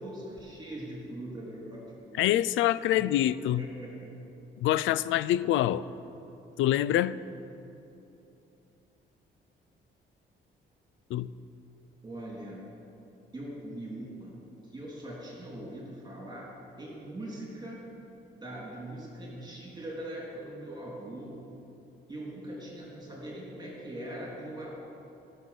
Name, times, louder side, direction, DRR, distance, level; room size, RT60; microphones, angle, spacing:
voice 1, 0.0-2.3 2.9-3.1 3.6-4.2 12.0-12.6 13.3-14.4 14.6-16.5 16.8-17.9 18.4-21.4 22.1-24.7, right 1 dB, 20° right, -5 dB, 3.5 m, -41 dB
voice 2, 2.2-3.7 4.6-5.8 6.6-7.2 11.1-11.3, left 13 dB, 80° left, 17 dB, 0.4 m, -25 dB
17.5 x 6.5 x 6.0 m, 2.9 s
cardioid pair, 90°, 20 cm